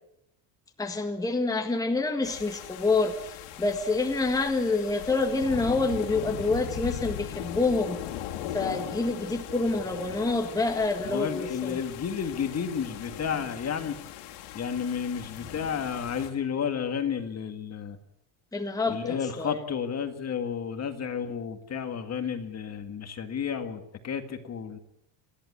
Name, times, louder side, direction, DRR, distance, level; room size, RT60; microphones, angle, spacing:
voice 1, 0.8-8.0 8.5-11.8 18.5-19.6, left 3 dB, 5° left, 4 dB, 1.7 m, -27 dB
sound 1, 2.2-16.3, left 11 dB, 85° left, 2.6 m, -39 dB
voice 2, 11.0-14.0 14.5-18.0 18.9-24.8, left 7 dB, 30° left, 7 dB, 1.9 m, -32 dB
29.0 x 11.5 x 9.7 m, 0.81 s
cardioid pair, 150°, 50 cm